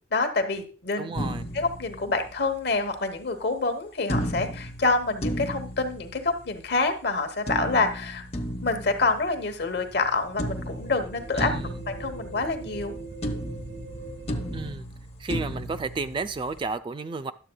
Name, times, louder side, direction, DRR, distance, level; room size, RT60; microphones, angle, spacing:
voice 1, 0.1-1.3 1.5-8.2 8.6-11.5 11.9-13.0, left 3 dB, 60° left, 1.0 m, -27 dB
voice 2, 1.0-1.5 11.3-11.7 14.5-14.9 15.2-17.3, right 3 dB, 25° right, 0.3 m, -32 dB
sound 1, 1.1-2.7 4.1-6.7 7.5-10.0 10.4-12.9 13.2-16.7, equal, 35° left, 0.7 m, -34 dB
sound 2, 9.7-14.7, right 2 dB, 50° right, 1.1 m, -41 dB
11.0 x 7.4 x 2.2 m
head